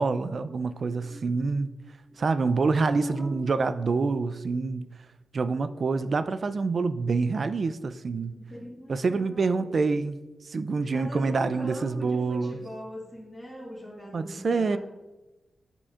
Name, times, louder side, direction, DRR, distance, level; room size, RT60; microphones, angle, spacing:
voice 1, 0.0-1.7 2.2-4.9 5.3-8.4 8.9-10.2 10.5-12.6 14.1-14.8, right 4 dB, 55° right, 12 dB, 0.3 m, -26 dB
voice 2, 1.0-2.2 3.0-3.6 8.3-9.7 10.8-14.8, equal, 20° left, -9 dB, 1.7 m, -42 dB
9.8 x 4.3 x 2.4 m, 1.1 s
wide cardioid pair, 110°, 0 cm